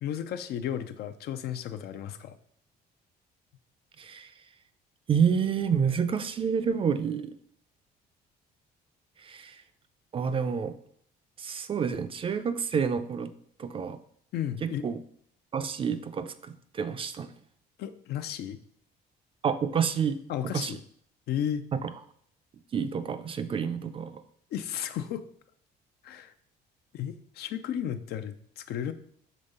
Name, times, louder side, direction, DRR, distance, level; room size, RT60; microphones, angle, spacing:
voice 1, 0.0-2.4 14.3-14.9 17.8-18.6 20.3-20.8 21.3-21.7 24.5-25.3 26.0-26.3 26.9-28.9, left 10 dB, 70° left, 10 dB, 0.5 m, -34 dB
voice 2, 4.0-4.3 5.1-7.4 9.2-9.6 10.1-10.8 11.4-13.3 13.6-14.0 14.6-15.0 15.5-17.3 19.4-20.2 20.5-20.8 21.8-21.9 22.7-24.1, right 6 dB, 30° right, 10 dB, 0.4 m, -29 dB
5.2 x 3.5 x 5.4 m, 0.65 s
cardioid pair, 110°, 17 cm